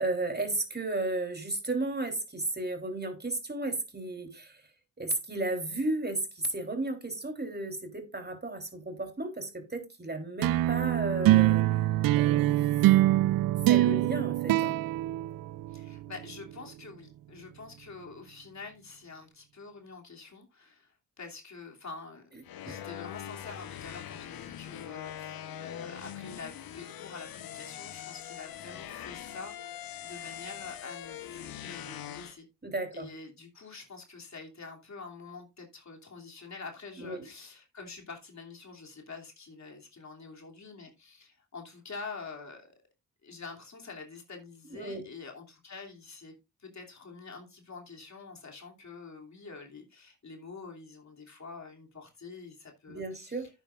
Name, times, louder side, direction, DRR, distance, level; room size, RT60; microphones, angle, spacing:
voice 1, 0.0-4.6 5.0-11.6 12.2-12.5 13.1-14.7 22.7-22.8 32.6-33.1 37.0-37.3 44.7-45.0 52.9-53.5, right 2 dB, 30° right, 3.5 m, -34 dB
sound 1, 10.4-16.0, right 15 dB, 70° right, 0.5 m, -24 dB
voice 2, 15.7-22.3 22.6-32.5 32.9-42.7 43.2-53.5, left 4 dB, 50° left, 2.9 m, -46 dB
sound 2, 22.4-32.3, left 10 dB, 75° left, 1.0 m, -42 dB
11.0 x 9.3 x 2.5 m
supercardioid pair, 40°, 36 cm